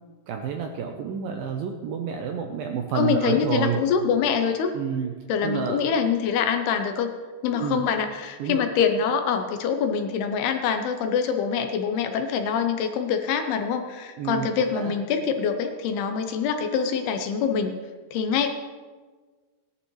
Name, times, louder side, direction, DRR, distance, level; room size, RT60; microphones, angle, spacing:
voice 1, 0.3-3.8 4.7-5.1 5.4-5.8 7.5-7.8 8.4-8.7 14.2-14.9, right 7 dB, 80° right, 3 dB, 2.1 m, -29 dB
voice 2, 2.9-4.7 5.3-7.1 7.4-17.7 18.1-18.5, left 6 dB, 75° left, 6 dB, 2.5 m, -25 dB
17.5 x 11.5 x 3.2 m, 1.4 s
omnidirectional pair, 4.9 m